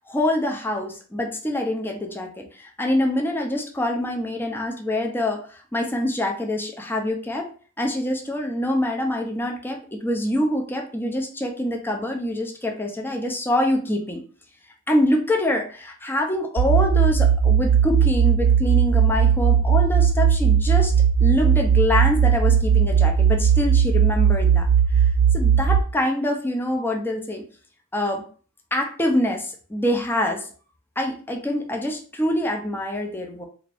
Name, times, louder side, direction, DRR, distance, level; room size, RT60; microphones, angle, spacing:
voice 1, 0.0-7.5 7.8-14.2 14.9-20.9 21.2-27.4 27.9-28.2 28.7-30.5 31.0-33.4, left 1 dB, 10° left, 1 dB, 0.5 m, -25 dB
sound 1, 16.6-25.8, right 7 dB, 90° right, 0.4 m, -18 dB
3.5 x 2.5 x 3.3 m, 0.40 s
head